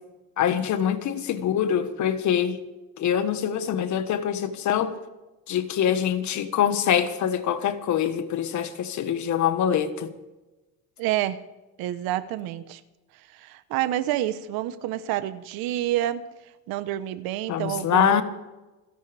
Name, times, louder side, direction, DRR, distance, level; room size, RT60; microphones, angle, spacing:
voice 1, 0.4-2.6 3.0-5.0 5.5-10.1 17.5-18.2, left 9 dB, 55° left, 1.5 m, -24 dB
voice 2, 11.0-11.4 11.8-12.8 13.3-16.2 16.7-18.2, right 13 dB, 85° right, 1.1 m, -28 dB
27.5 x 11.5 x 3.5 m
cardioid pair, 130°, 35 cm